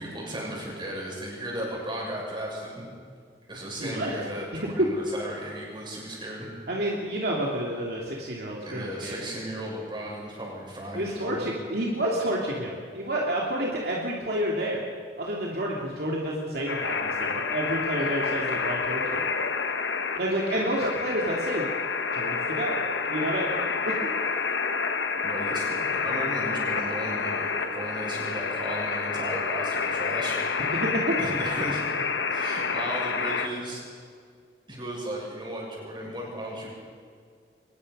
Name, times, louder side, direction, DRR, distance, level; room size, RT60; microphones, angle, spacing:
voice 1, 0.0-2.9 3.5-6.5 8.6-11.5 18.0-18.3 20.5-20.8 25.2-30.3 31.2-31.8 32.3-33.8 34.7-36.7, right 1 dB, 25° right, -3 dB, 6.7 m, -35 dB
voice 2, 3.8-4.2 6.7-9.2 10.9-14.9 15.2-19.2 20.2-21.7 22.1-22.8 23.1-24.0 30.7-31.2, right 1 dB, 60° right, -3 dB, 2.7 m, -29 dB
sound 1, 16.7-33.5, left 5 dB, 85° left, 1.3 m, -29 dB
23.5 x 20.0 x 5.5 m, 2.1 s
head